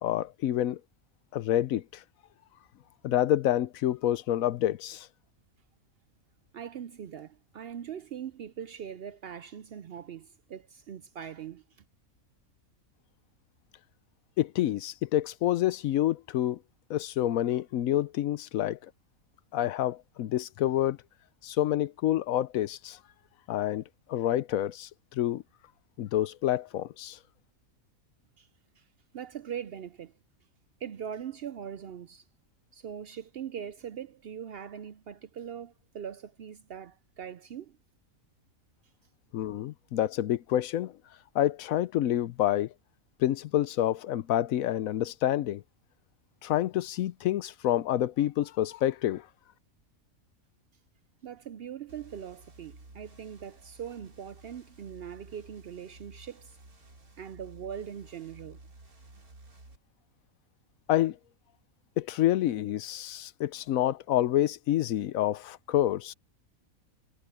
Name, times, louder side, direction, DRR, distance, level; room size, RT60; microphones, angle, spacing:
voice 1, 0.0-0.8 1.3-2.0 3.0-5.1 14.4-16.6 16.9-18.8 19.5-21.0 21.4-23.0 23.5-23.8 24.1-25.4 26.0-27.2 39.3-40.9 41.3-42.7 43.2-45.6 46.4-49.3 60.9-61.2 62.0-66.1, left 12 dB, 75° left, 1.0 m, -28 dB
voice 2, 6.5-11.6 28.4-28.5 28.8-28.9 29.1-30.2 30.8-32.3 32.7-37.8 51.2-56.6 57.2-58.6, right 8 dB, 65° right, 0.6 m, -41 dB
sound 1, 51.9-59.8, right 2 dB, 85° right, 4.0 m, -53 dB
omnidirectional pair, 1.5 m